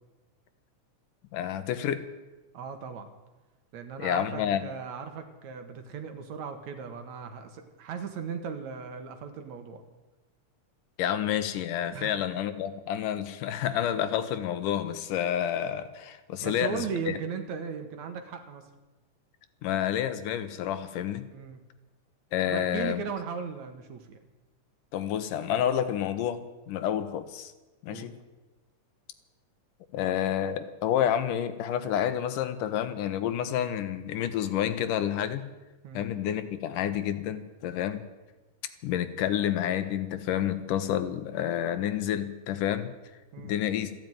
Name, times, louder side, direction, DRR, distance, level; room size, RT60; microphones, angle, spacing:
voice 1, 1.3-2.0 4.0-4.6 11.0-17.2 19.6-21.2 22.3-23.0 24.9-26.4 26.7-27.5 27.8-28.2 29.9-35.4 35.9-38.0 38.8-42.9 43.4-43.9, left 10 dB, 80° left, 11 dB, 2.6 m, -29 dB
voice 2, 2.5-3.1 3.7-9.8 11.9-12.1 16.4-18.7 21.3-21.6 22.4-24.2 27.9-28.1 35.8-36.1 43.3-43.6, right 6 dB, 65° right, 7 dB, 2.5 m, -37 dB
14.5 x 10.5 x 9.3 m, 1.1 s
omnidirectional pair, 3.7 m